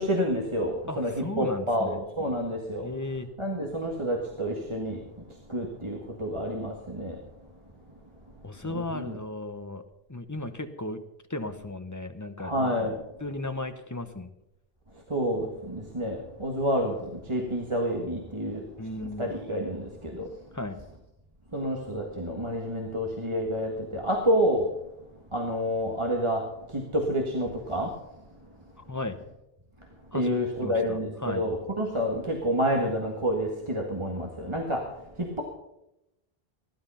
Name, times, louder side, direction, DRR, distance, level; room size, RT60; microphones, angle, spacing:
voice 1, 0.0-2.9 3.4-5.0 5.5-7.2 8.7-9.2 12.4-12.9 15.1-16.9 17.3-18.6 19.2-20.3 21.5-24.7 25.3-26.4 26.7-27.9 30.1-34.8 35.2-35.4, equal, 30° right, 0 dB, 1.7 m, -28 dB
voice 2, 0.9-2.0 2.8-3.3 8.4-9.8 10.1-11.0 11.3-12.5 13.2-14.3 18.8-19.4 20.5-20.8 28.8-29.2 30.1-31.5, left 2 dB, 20° left, 8 dB, 0.9 m, -35 dB
15.5 x 11.5 x 5.6 m, 0.85 s
omnidirectional pair, 1.0 m